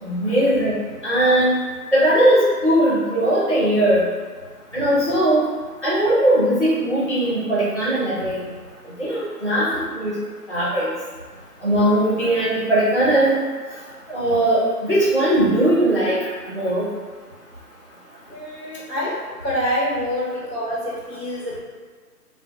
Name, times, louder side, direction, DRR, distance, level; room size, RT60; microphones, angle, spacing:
voice 1, 0.0-0.8 1.0-1.5 1.9-4.0 4.7-5.4 5.8-8.5 9.0-10.2 10.5-10.9 11.6-13.4 14.1-16.2 16.5-16.9, right 1 dB, 40° right, -9 dB, 0.4 m, -19 dB
voice 2, 18.3-21.6, equal, 85° left, -7 dB, 1.2 m, -26 dB
2.2 x 2.1 x 2.7 m, 1.5 s
figure-of-eight pair, 155°, 49 cm